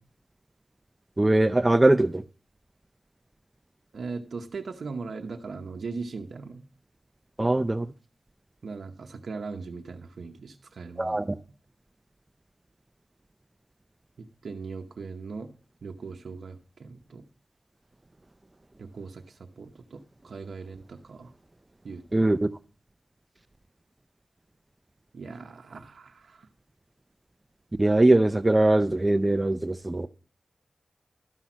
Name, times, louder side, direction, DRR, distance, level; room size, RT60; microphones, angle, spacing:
voice 1, 1.2-2.2 7.4-7.9 11.0-11.3 22.1-22.4 27.8-30.1, right 2 dB, 30° right, 0.5 m, -21 dB
voice 2, 3.9-6.6 8.6-11.3 14.2-15.5 15.8-17.2 18.8-21.3 21.8-22.3 25.1-26.5, right 4 dB, 85° right, 0.8 m, -39 dB
12.5 x 5.7 x 6.1 m
cardioid pair, 50°, 0 cm